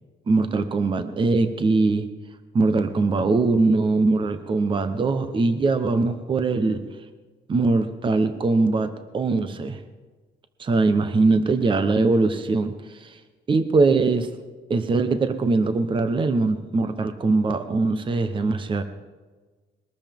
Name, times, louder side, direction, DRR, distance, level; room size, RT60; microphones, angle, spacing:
voice 1, 0.3-2.1 2.5-6.8 7.5-9.8 10.6-13.2 13.5-14.3 14.7-18.8, right 3 dB, 30° right, 9 dB, 1.0 m, -22 dB
22.0 x 13.5 x 3.6 m, 1.3 s
cardioid pair, 110°, 17 cm